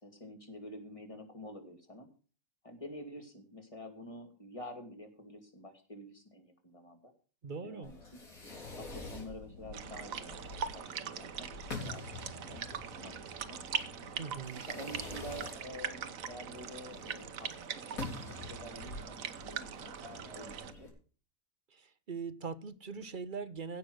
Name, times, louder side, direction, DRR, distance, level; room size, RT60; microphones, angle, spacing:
voice 1, 0.0-2.1 2.6-7.1 7.6-8.2 8.7-11.5 11.8-12.7 12.9-13.6 14.5-20.9, equal, 25° left, 2.7 m, -48 dB
voice 2, 7.4-7.9 14.2-14.6 21.7-23.8, right 5 dB, 40° right, 0.9 m, -41 dB
Fireworks, 7.8-20.9, left 3 dB, 90° left, 3.9 m, -47 dB
sound 1, 9.7-20.7, right 8 dB, 80° right, 1.3 m, -41 dB
16.0 x 6.0 x 6.4 m
omnidirectional pair, 1.4 m